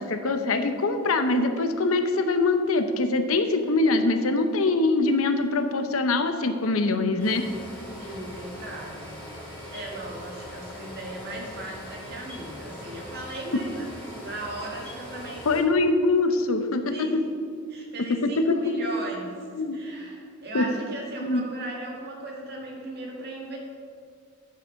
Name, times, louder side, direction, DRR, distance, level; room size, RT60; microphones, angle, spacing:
voice 1, 0.0-7.5 15.5-17.2 18.1-18.7 19.5-19.8 20.5-20.7 21.2-21.4, left 3 dB, 80° left, 8 dB, 0.7 m, -23 dB
sound 1, 7.2-15.6, equal, 5° left, 2.6 m, -41 dB
voice 2, 8.0-15.5 16.9-17.2 17.7-19.3 19.7-23.6, right 1 dB, 50° right, -2 dB, 1.9 m, -37 dB
9.9 x 6.1 x 5.8 m, 2.2 s
head